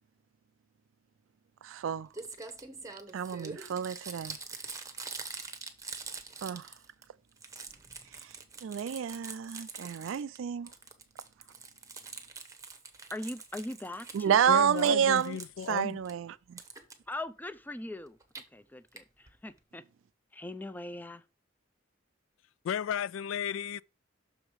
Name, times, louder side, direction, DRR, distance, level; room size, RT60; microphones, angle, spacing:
voice 1, 1.6-2.1 3.1-4.4 6.4-6.7 8.6-10.7 14.1-15.4 15.7-16.6, right 8 dB, 80° right, 0.3 m, -29 dB
Crumpling crinkling, 1.8-1.9 2.1-7.0 7.3-10.4 10.7-14.3 14.6-16.1 16.6-16.9 18.1-18.4 19.0-19.1 19.3-19.4 19.6-19.7, right 4 dB, 15° right, 0.9 m, -44 dB
voice 2, 13.1-14.6 17.1-18.2 18.5-19.8 20.3-21.2, left 1 dB, 10° left, 0.4 m, -40 dB
voice 3, 14.4-16.0 22.6-23.8, left 8 dB, 80° left, 0.3 m, -34 dB
6.3 x 4.8 x 4.7 m
head